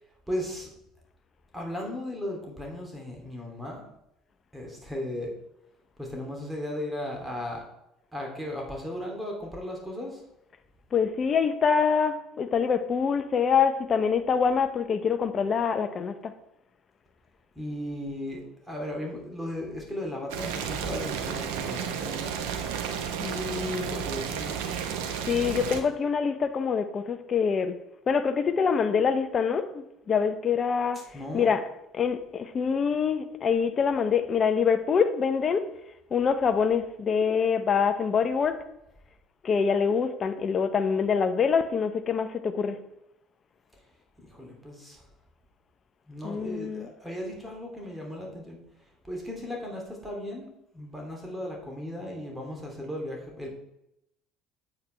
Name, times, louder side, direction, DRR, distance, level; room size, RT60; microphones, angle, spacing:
voice 1, 0.3-0.7 1.5-3.8 4.5-5.3 6.0-7.6 8.1-10.2 17.5-22.3 23.9-24.6 30.9-31.5 44.2-45.1 46.1-50.5 50.7-53.6, left 1 dB, 5° right, 2.7 m, -36 dB
voice 2, 10.9-16.3 23.2-24.1 25.3-27.8 28.1-31.0 31.3-31.6 31.9-35.6 36.1-38.6 39.4-42.8 46.2-46.9, left 6 dB, 40° left, 0.8 m, -25 dB
Boiling, 20.3-25.8, right 7 dB, 70° right, 1.0 m, -32 dB
8.4 x 8.3 x 3.3 m
hypercardioid pair, 60°, 0 cm